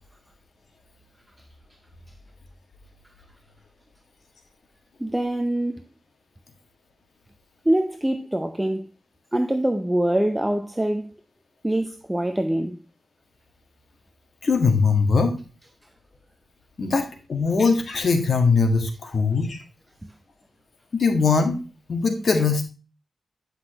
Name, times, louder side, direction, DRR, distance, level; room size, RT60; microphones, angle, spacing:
voice 1, 5.0-5.7 7.7-8.9 9.3-11.1 11.6-12.8, right 1 dB, 10° right, 0.5 m, -24 dB
voice 2, 14.4-15.3 16.8-19.6 20.9-21.6 21.9-22.6, left 4 dB, 55° left, 1.7 m, -21 dB
9.9 x 5.7 x 2.8 m
wide cardioid pair, 115°, 0 cm